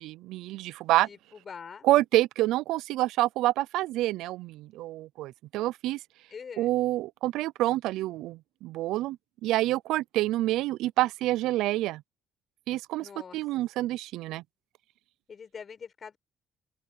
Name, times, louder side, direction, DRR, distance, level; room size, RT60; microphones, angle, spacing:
voice 1, 0.0-1.1 1.8-6.0 6.6-9.2 9.4-12.0 12.7-13.1 13.3-14.4, right 16 dB, 90° right, 0.4 m, -27 dB
voice 2, 1.0-1.9 6.3-6.7 13.0-13.4 15.3-16.2, left 6 dB, 35° left, 7.0 m, -44 dB
open air
cardioid pair, 135°, 0 cm